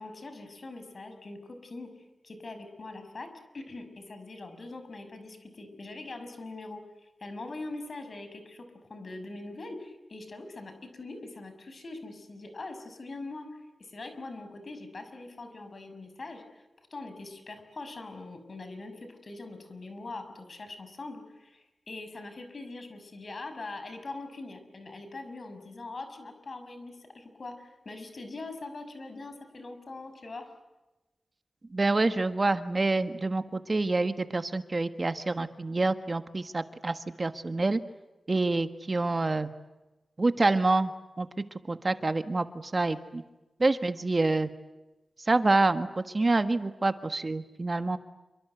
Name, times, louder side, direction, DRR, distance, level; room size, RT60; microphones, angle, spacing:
voice 1, 0.0-3.3 3.5-16.6 16.9-30.5, left 2 dB, 55° left, 8 dB, 6.3 m, -42 dB
voice 2, 31.7-37.8 38.3-39.5 40.2-40.9 41.2-41.3 41.7-42.5 42.7-43.2 43.6-44.5 45.3-45.9 46.1-48.0, right 2 dB, 35° right, 10 dB, 1.5 m, -27 dB
28.5 x 25.5 x 8.1 m, 1.0 s
wide cardioid pair, 95°, 0 cm